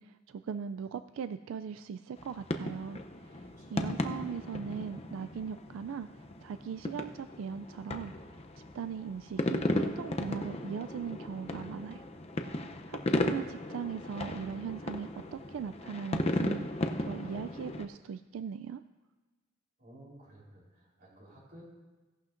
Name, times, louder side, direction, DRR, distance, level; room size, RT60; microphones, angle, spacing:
voice 1, 0.0-8.1 8.7-12.1 12.4-16.7 17.0-18.8, right 6 dB, 85° right, 11 dB, 0.3 m, -39 dB
sound 1, 2.2-17.8, left 1 dB, 30° left, 0.6 m, -36 dB
voice 2, 3.6-3.9 19.8-21.6, right 1 dB, 45° right, -3 dB, 3.6 m, -55 dB
16.5 x 11.5 x 2.5 m, 1.2 s
head